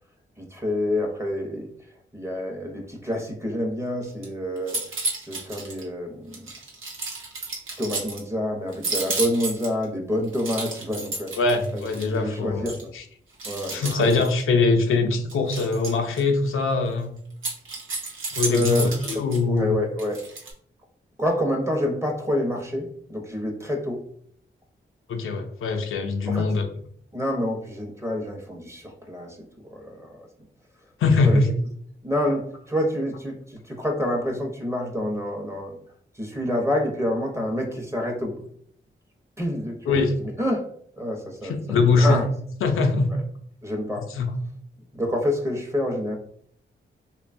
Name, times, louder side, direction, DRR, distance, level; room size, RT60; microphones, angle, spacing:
voice 1, 0.4-1.7 2.1-4.8 5.3-6.4 7.8-11.3 11.7-12.9 13.4-14.2 18.4-18.8 19.5-20.3 21.2-24.0 26.3-26.5 27.1-29.4 29.7-30.2 31.2-31.4 32.0-35.8 36.1-38.4 39.4-40.6 41.0-42.3 43.1-43.2 43.6-44.1 44.9-46.2, left 1 dB, 15° right, 1 dB, 0.7 m, -28 dB
sound 1, 4.0-4.3 4.6-5.8 6.3-8.2 8.7-9.8 10.3-12.2 12.7-12.8 13.4-14.4 15.3-16.2 17.3-19.4 20.0-20.5, right 3 dB, 80° right, 0.7 m, -32 dB
voice 2, 11.4-12.6 12.9-13.0 13.7-17.2 18.3-19.8 25.1-26.7 31.0-31.5 39.9-40.2 41.4-42.2 42.6-43.1 44.0-44.3, left 3 dB, 90° left, 5 dB, 0.4 m, -22 dB
2.9 x 2.2 x 2.5 m, 0.62 s
cardioid pair, 60°, 21 cm